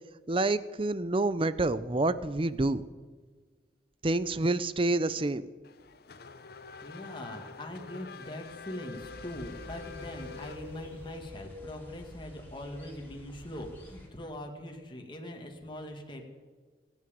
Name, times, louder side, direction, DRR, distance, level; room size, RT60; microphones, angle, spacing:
voice 1, 0.3-2.9 4.0-5.5, right 2 dB, 30° right, 15 dB, 0.6 m, -28 dB
Race car auto racing / Accelerating revving vroom, 5.6-11.1, left 5 dB, 60° left, 0.8 m, -47 dB
voice 2, 6.8-16.2, left 1 dB, 25° left, 2 dB, 2.1 m, -42 dB
Wind, 8.4-12.8 13.0-13.1, left 3 dB, 55° right, 2.7 m, -49 dB
sound 1, 8.9-14.1, left 1 dB, 10° left, 4.0 m, -50 dB
26.5 x 9.8 x 5.2 m, 1.5 s
head